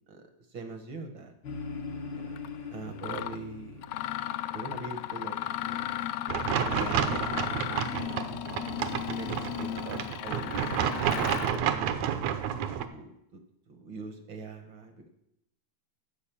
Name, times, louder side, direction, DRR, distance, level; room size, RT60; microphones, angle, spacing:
voice 1, 0.5-1.3 2.1-2.3 2.7-3.8 4.5-6.0 6.7-7.2 7.9-8.6 9.0-10.5 11.0-12.2 12.7-13.4 13.7-15.1, right 3 dB, 60° right, 6 dB, 1.3 m, -42 dB
sound 1, 1.4-7.1, left 4 dB, 60° left, 1.2 m, -43 dB
Mechanisms, 2.4-2.5 3.0-3.4 3.8-11.6, left 13 dB, 80° left, 1.6 m, -35 dB
sound 2, 6.3-12.9, right 9 dB, 75° right, 1.9 m, -30 dB
13.5 x 5.1 x 7.4 m, 0.82 s
omnidirectional pair, 3.4 m